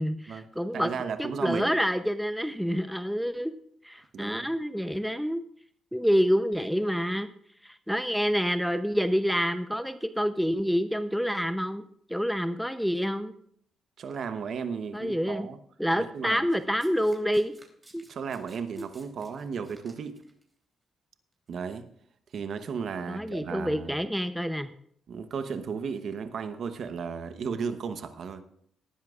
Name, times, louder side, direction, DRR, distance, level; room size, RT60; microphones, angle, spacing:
voice 1, 0.0-0.9 1.2-3.5 3.8-5.4 5.9-7.3 7.6-13.3 14.9-15.5 15.8-17.5 17.9-18.0 18.8-18.9 23.1-24.7, equal, ahead, 0.7 m, -27 dB
voice 2, 0.7-1.8 4.1-4.5 14.0-15.6 16.0-16.5 18.1-20.2 21.5-21.9 22.3-24.0 25.1-28.4, right 6 dB, 65° right, 1.0 m, -34 dB
Domestic sounds home sounds, 16.5-20.4 21.3-21.5, right 2 dB, 25° right, 3.4 m, -57 dB
19.0 x 11.0 x 2.5 m
supercardioid pair, 60°, 0 cm